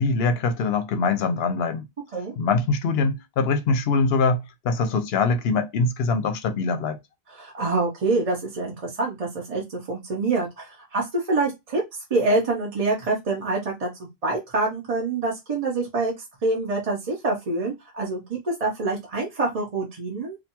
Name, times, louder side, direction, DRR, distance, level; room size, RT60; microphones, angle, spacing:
voice 1, 0.0-1.9 2.4-7.0, left 4 dB, 80° left, 0.8 m, -23 dB
voice 2, 7.3-11.8 12.1-16.1 16.4-20.4, right 3 dB, 45° right, 0.7 m, -26 dB
2.5 x 2.2 x 2.8 m
omnidirectional pair, 1.0 m